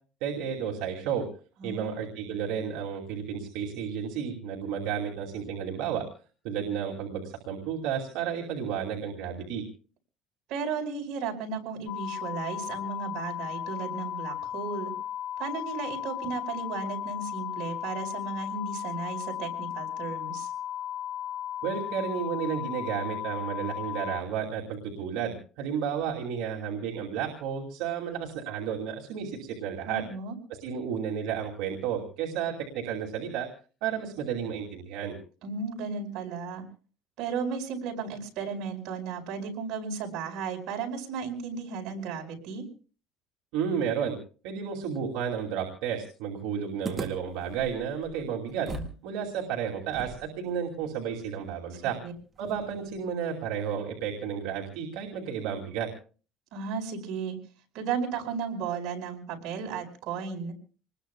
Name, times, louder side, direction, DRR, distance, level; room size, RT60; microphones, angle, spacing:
voice 1, 0.2-1.2 1.6-6.0 6.4-9.6 21.6-30.0 30.6-33.5 33.8-35.1 43.5-44.1 44.4-48.7 49.0-52.0 52.4-55.9, right 8 dB, 85° right, -1 dB, 2.7 m, -32 dB
voice 2, 1.6-2.0 10.5-14.9 15.4-20.5 29.8-30.3 35.4-36.6 37.2-42.6 51.8-52.1 56.5-57.4 57.7-60.5, right 5 dB, 65° right, 1 dB, 5.1 m, -34 dB
sound 1, 11.9-24.2, left 11 dB, 90° left, 4.2 m, -35 dB
sound 2, 46.8-49.0 49.3-49.4 49.9-53.0, right 3 dB, 20° right, 2.0 m, -41 dB
27.5 x 20.5 x 2.3 m, 0.38 s
cardioid pair, 150°, 0 cm